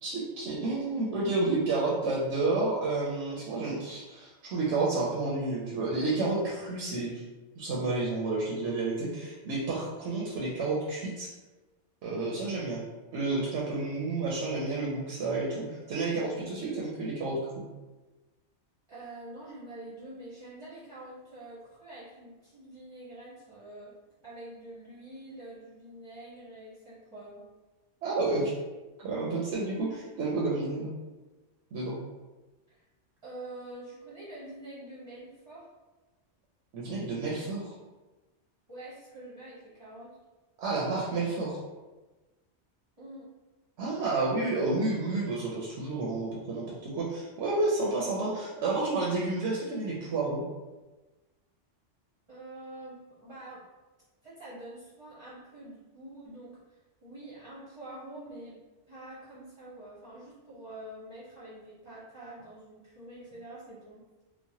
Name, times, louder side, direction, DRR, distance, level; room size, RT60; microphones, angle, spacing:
voice 1, 0.0-7.2 7.6-11.3 12.0-12.8 13.1-17.6 28.0-28.5 29.0-30.9 31.7-32.0 36.7-37.7 40.6-41.6 43.8-50.4, right 3 dB, 80° right, -5 dB, 0.9 m, -30 dB
voice 2, 18.9-23.9 24.2-27.5 32.7-32.8 33.2-35.7 38.7-40.2 43.0-43.3 52.3-53.6 54.2-58.6 58.9-64.0, right 1 dB, 30° right, -10 dB, 0.6 m, -46 dB
3.0 x 2.1 x 2.7 m, 1.2 s
omnidirectional pair, 1.2 m